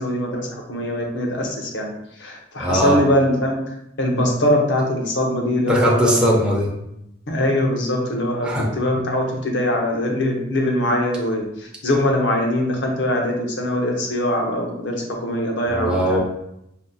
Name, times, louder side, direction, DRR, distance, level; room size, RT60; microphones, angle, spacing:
voice 1, 0.0-1.9 2.2-3.6 4.0-6.2 7.3-16.2, left 1 dB, 75° left, 1 dB, 0.8 m, -22 dB
voice 2, 2.6-3.0 5.7-6.7 8.4-8.7 15.7-16.2, equal, 5° right, -3 dB, 0.6 m, -19 dB
5.0 x 2.8 x 2.3 m, 0.81 s
head